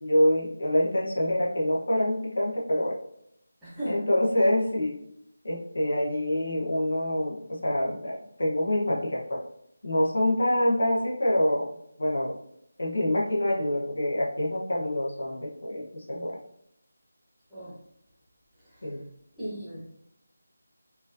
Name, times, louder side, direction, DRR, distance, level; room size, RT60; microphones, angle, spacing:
voice 1, 0.0-3.0 3.8-5.0 5.4-9.4 9.8-11.7 12.0-12.4 12.8-16.4 18.8-19.0, left 1 dB, 70° left, -3 dB, 1.0 m, -26 dB
voice 2, 3.6-4.1 17.5-17.7 18.7-18.9 19.4-19.8, equal, ahead, -13 dB, 0.9 m, -36 dB
4.5 x 2.6 x 2.6 m, 0.76 s
figure-of-eight pair, 175°, 0 cm